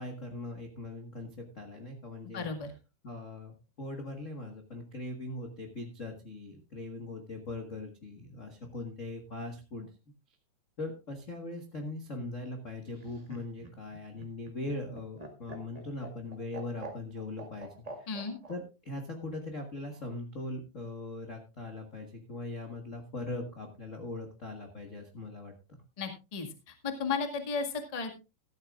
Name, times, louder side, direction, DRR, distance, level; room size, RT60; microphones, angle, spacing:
voice 1, 0.0-2.5 3.0-9.9 10.8-17.7 18.0-18.1 18.5-25.8, left 2 dB, 45° left, 3 dB, 1.0 m, -40 dB
voice 2, 2.3-2.7 18.1-18.4 26.0-28.1, left 5 dB, 20° left, 4 dB, 0.9 m, -34 dB
Laughter, 12.9-18.6 19.9-20.5, right 2 dB, 25° right, 0.7 m, -46 dB
15.0 x 13.5 x 2.4 m, 0.28 s
omnidirectional pair, 4.0 m